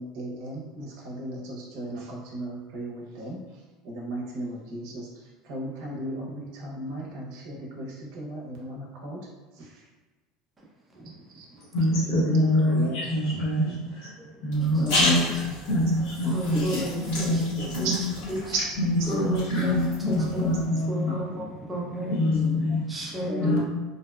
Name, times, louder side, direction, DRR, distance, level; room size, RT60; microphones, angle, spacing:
voice 1, 0.0-3.4 3.8-5.1 5.4-9.3 9.6-9.7 11.0-11.1 11.3-11.4 12.2-13.0 14.7-15.1 16.2-16.8 17.3-17.7 18.5-18.6 19.0-19.3 19.6-19.7 20.3-20.4 20.7-21.2 22.3-22.8 23.3-23.6, equal, 60° right, -2 dB, 0.6 m, -35 dB
voice 2, 11.7-14.1 14.4-18.0 18.2-18.3 18.8-21.2 22.1-22.9 23.4-23.6, left 1 dB, 60° left, -8 dB, 0.5 m, -25 dB
sound 1, 14.5-20.6, left 1 dB, 80° left, 1.3 m, -32 dB
voice 3, 16.3-17.0 17.3-17.4 17.8-17.9 18.3-18.5 19.1-20.5 20.9-22.2 22.9-23.6, equal, 10° right, -3 dB, 0.4 m, -33 dB
2.6 x 2.1 x 2.2 m, 1.3 s
cardioid pair, 180°, 0 cm